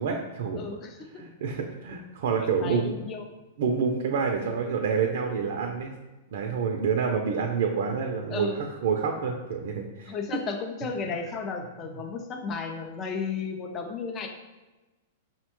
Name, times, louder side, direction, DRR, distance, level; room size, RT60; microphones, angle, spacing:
voice 1, 0.0-0.7 1.2-3.0 3.6-5.9 6.3-10.2 11.8-11.9, right 6 dB, 65° right, 2 dB, 0.4 m, -28 dB
voice 2, 0.5-1.0 2.4-3.2 8.3-8.6 10.1-14.3, left 5 dB, 25° left, 4 dB, 0.4 m, -34 dB
5.4 x 2.1 x 2.9 m, 1.1 s
hypercardioid pair, 145°, 0 cm